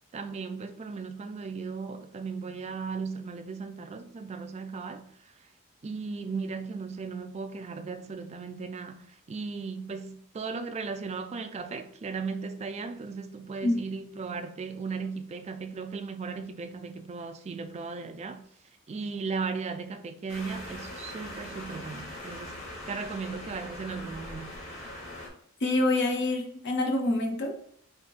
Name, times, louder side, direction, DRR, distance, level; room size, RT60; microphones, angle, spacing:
voice 1, 0.1-5.1 5.8-18.4 18.9-24.6, right 4 dB, 30° right, 0.3 m, -36 dB
sound 1, 20.3-25.3, left 1 dB, 35° left, 1.3 m, -41 dB
voice 2, 25.6-27.6, left 2 dB, 55° left, 0.8 m, -26 dB
3.5 x 2.7 x 4.0 m
head